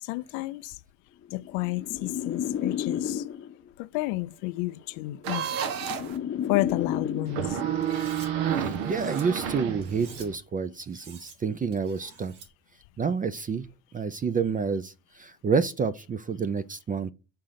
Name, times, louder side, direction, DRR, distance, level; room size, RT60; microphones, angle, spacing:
voice 1, 0.0-0.8 1.3-3.3 3.8-5.6 6.5-7.6, left 19 dB, 80° left, 0.6 m, -31 dB
sound 1, 1.3-3.7 4.7-7.7, left 9 dB, 30° left, 0.7 m, -32 dB
sound 2, 5.2-6.2 7.3-10.4, right 9 dB, 85° right, 1.3 m, -30 dB
Cutlery silverware, 7.8-8.3 8.7-9.2 9.8-10.3 10.8-11.4 11.7-12.5, right 5 dB, 65° right, 3.7 m, -48 dB
voice 2, 8.5-12.3 13.0-13.7 13.9-17.1, right 5 dB, 20° right, 0.4 m, -29 dB
6.5 x 3.8 x 5.7 m
cardioid pair, 110°, 42 cm